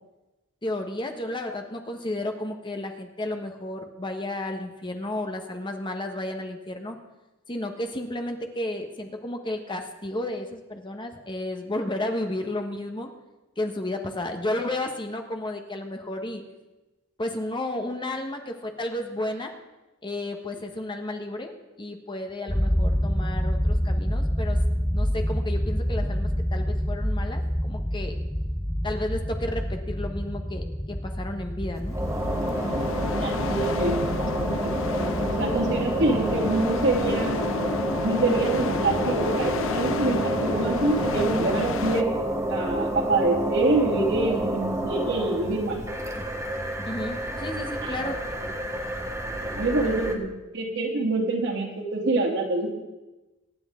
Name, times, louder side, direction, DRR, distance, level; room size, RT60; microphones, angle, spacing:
voice 1, 0.6-7.0 7.5-13.1 13.6-16.4 17.2-19.5 20.0-24.6 24.9-28.1 28.8-32.0 46.8-48.2, left 1 dB, 25° left, 4 dB, 1.1 m, -32 dB
sound 1, 22.5-37.0, equal, 5° left, 0.5 m, -28 dB
sound 2, 31.7-50.2, right 1 dB, 15° right, 1.3 m, -29 dB
sound 3, 31.9-42.0, left 4 dB, 65° left, 0.7 m, -31 dB
voice 2, 33.1-35.1 35.4-37.4 38.0-42.1 42.5-45.8 47.8-48.1 49.5-50.3 50.5-52.8, right 2 dB, 60° right, -1 dB, 2.7 m, -26 dB
24.0 x 9.9 x 3.7 m, 1.1 s
head